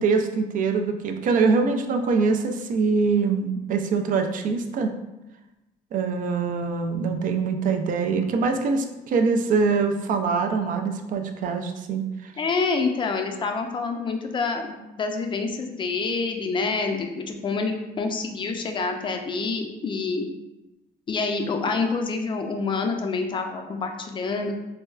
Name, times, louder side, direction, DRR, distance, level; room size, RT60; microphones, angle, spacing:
voice 1, 0.0-4.9 5.9-12.3, right 4 dB, 55° right, 5 dB, 0.4 m, -24 dB
voice 2, 12.4-20.3 21.1-24.6, left 4 dB, 30° left, 5 dB, 0.4 m, -27 dB
4.2 x 2.3 x 2.3 m, 0.99 s
cardioid pair, 110°, 17 cm